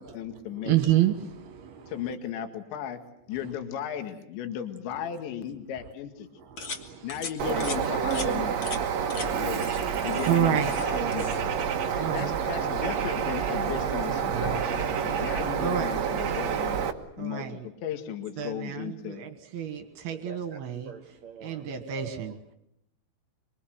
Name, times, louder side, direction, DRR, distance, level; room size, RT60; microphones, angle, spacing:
voice 1, 0.0-0.8 1.9-3.0 3.3-6.3 7.0-8.6 9.1-9.6 10.0-11.3 11.9-16.8 17.2-19.2, left 9 dB, 70° left, 7 dB, 4.1 m, -36 dB
voice 2, 0.5-2.1 3.3-3.5 6.5-7.2 8.8-9.4 9.9-10.8 12.0-12.3 15.6-16.0 17.2-17.7 18.4-20.9 21.4-22.4, right 11 dB, 65° right, 8 dB, 3.0 m, -30 dB
sound 1, 6.6-6.8 7.1-7.3 7.6-7.8 8.1-8.3 8.6-8.8 9.1-9.3 9.5-9.8 10.1-10.9 11.1-11.4, left 4 dB, 45° left, 1.6 m, -37 dB
Bird, 7.4-16.9, right 7 dB, 85° right, 1.5 m, -28 dB
voice 3, 20.1-22.5, right 6 dB, 50° right, 5 dB, 2.5 m, -46 dB
26.5 x 24.0 x 8.0 m, 0.76 s
omnidirectional pair, 5.7 m